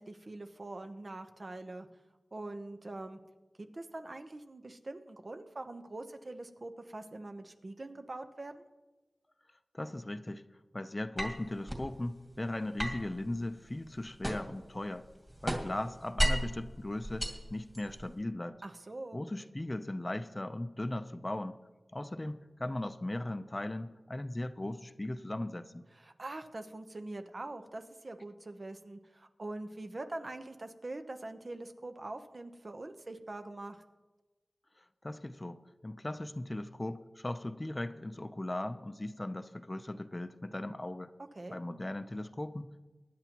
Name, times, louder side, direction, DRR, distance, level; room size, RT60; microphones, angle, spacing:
voice 1, 0.0-1.9 2.3-3.2 3.6-8.6 18.6-19.2 26.0-33.8 41.4-41.6, right 2 dB, 50° right, 7 dB, 0.9 m, -43 dB
voice 2, 9.7-10.4 10.7-15.1 15.4-18.6 19.1-21.6 21.9-25.8 34.8-41.1 41.5-42.8, left 1 dB, 25° left, 10 dB, 0.6 m, -38 dB
sound 1, 11.2-11.9 12.8-14.6 15.0-16.6 17.0-18.1, equal, 15° right, 2.2 m, -34 dB
24.0 x 10.5 x 3.0 m, 1.2 s
wide cardioid pair, 80°, 0 cm